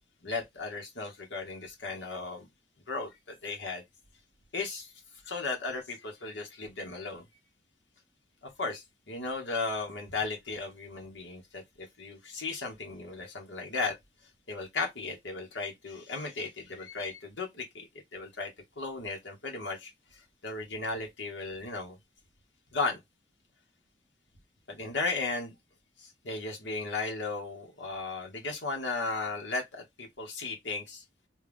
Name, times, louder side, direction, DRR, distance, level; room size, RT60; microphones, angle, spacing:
voice 1, 0.2-2.5 2.9-3.8 4.5-4.9 5.2-7.2 8.4-13.9 14.5-18.5 18.8-19.9 20.4-22.0 22.7-23.0 24.7-25.5 26.0-31.0, left 3 dB, 70° left, 1.3 m, -35 dB
3.3 x 2.4 x 3.5 m
head